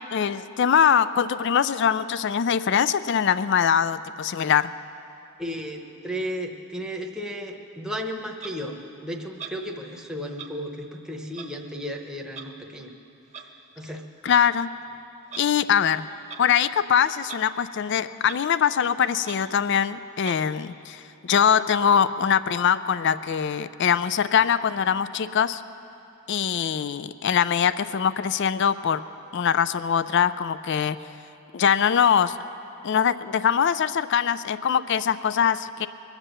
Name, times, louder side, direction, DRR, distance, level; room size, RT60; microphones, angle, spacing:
voice 1, 0.1-4.7 14.2-14.7 15.4-16.1 16.4-25.6 26.3-29.0 29.3-31.0 31.5-32.4 32.8-35.9, left 8 dB, 50° left, 15 dB, 0.3 m, -22 dB
voice 2, 5.4-12.9 13.8-14.0, equal, 5° right, 1 dB, 0.9 m, -34 dB
Clock, 8.4-8.5 9.4-9.6 10.3-10.5 11.3-11.5 12.3-12.5 13.3-13.5 14.2-14.4 15.2-15.5 16.2-16.5 17.2-17.4 17.7-17.8 18.2-18.4 18.8-18.9 19.2-19.4 20.2-20.4, right 6 dB, 30° right, 0.9 m, -40 dB
23.0 x 8.2 x 6.7 m, 2.9 s
head